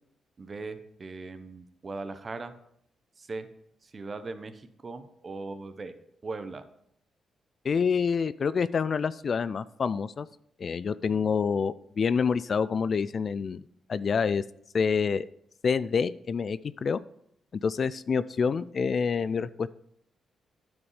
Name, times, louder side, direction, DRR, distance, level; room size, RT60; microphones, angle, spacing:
voice 1, 0.4-2.5 3.2-3.5 3.8-5.9 6.2-6.6, right 3 dB, 40° right, 10 dB, 0.9 m, -39 dB
voice 2, 7.6-10.3 10.6-13.6 13.9-14.4 14.7-15.3 15.6-17.0 17.6-19.7, left 6 dB, 55° left, 16 dB, 0.3 m, -27 dB
9.5 x 5.2 x 4.9 m, 0.72 s
supercardioid pair, 55°, 0 cm